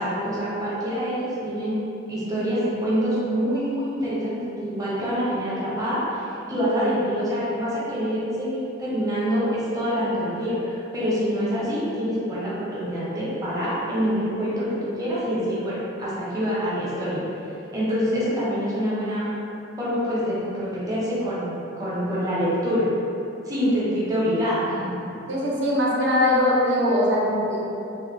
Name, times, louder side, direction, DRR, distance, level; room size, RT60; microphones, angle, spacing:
voice 1, 0.0-1.8 2.1-17.3 17.7-19.3 19.8-22.9 23.4-24.9, equal, 20° right, -9 dB, 0.6 m, -26 dB
voice 2, 25.3-27.6, left 1 dB, 65° right, -5 dB, 0.6 m, -21 dB
3.1 x 2.0 x 3.1 m, 2.8 s
head